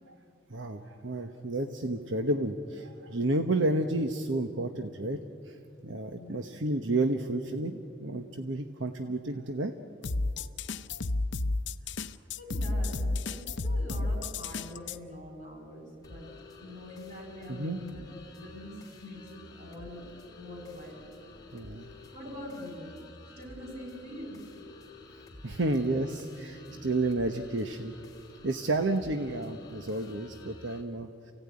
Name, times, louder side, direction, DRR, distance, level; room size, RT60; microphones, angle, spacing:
voice 1, 0.5-5.2 5.5-9.7 17.5-17.8 21.5-21.9 25.4-27.9 28.4-31.3, right 2 dB, 75° right, 6 dB, 1.1 m, -31 dB
sound 1, 10.0-15.0, left 2 dB, 65° left, 0.7 m, -31 dB
voice 2, 11.8-16.3 16.6-18.0 18.4-20.0 20.4-21.1 22.1-23.0 23.4-24.5 25.5-25.6 26.6-26.8, left 1 dB, 40° right, 0 dB, 6.9 m, -44 dB
sound 2, 16.0-30.8, left 2 dB, 20° left, 3.2 m, -51 dB
28.5 x 17.0 x 9.7 m, 2.5 s
head